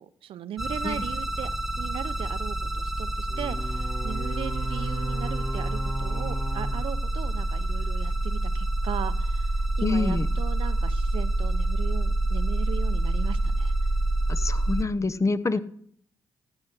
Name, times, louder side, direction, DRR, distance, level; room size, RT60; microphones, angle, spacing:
voice 1, 0.0-1.5 1.8-13.7 15.5-15.6, right 10 dB, 75° right, 14 dB, 0.6 m, -38 dB
sound 1, 0.6-14.8, right 2 dB, 5° right, 0.9 m, -27 dB
sound 2, 3.3-7.8, equal, 55° left, 3.8 m, -37 dB
voice 2, 9.8-10.3 14.3-15.6, left 3 dB, 35° left, 14 dB, 0.8 m, -26 dB
14.0 x 5.6 x 6.5 m, 0.63 s
supercardioid pair, 55°, 9 cm